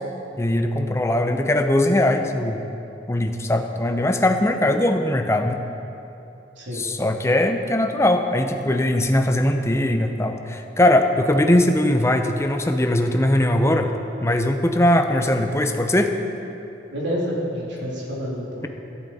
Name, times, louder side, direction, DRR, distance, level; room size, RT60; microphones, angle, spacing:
voice 1, 0.4-2.6 3.1-5.6 6.7-13.9 14.2-16.1, left 1 dB, 15° left, 6 dB, 0.6 m, -20 dB
voice 2, 16.9-18.7, equal, 75° right, -4 dB, 3.0 m, -28 dB
14.0 x 12.0 x 4.2 m, 2.9 s
head